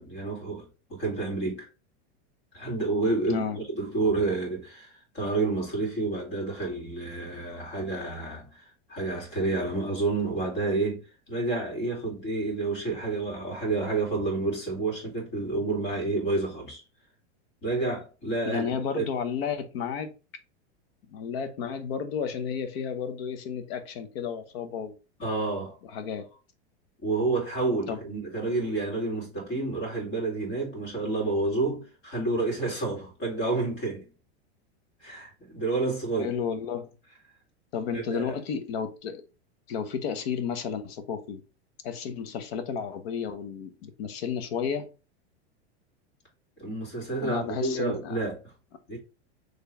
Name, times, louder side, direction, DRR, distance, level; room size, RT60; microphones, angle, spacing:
voice 1, 0.0-1.7 2.5-3.4 3.7-16.8 17.6-19.1 25.2-25.7 27.0-34.1 35.0-36.3 37.9-38.3 46.6-48.4 48.9-49.0, right 3 dB, 35° left, 2.5 m, -29 dB
voice 2, 3.2-3.6 18.4-20.1 21.1-24.9 25.8-26.3 27.9-28.0 36.2-36.9 37.7-39.2 39.7-41.4 41.8-44.9 47.2-48.2, left 7 dB, 60° left, 1.0 m, -32 dB
4.6 x 3.2 x 3.3 m
supercardioid pair, 145°, 34 cm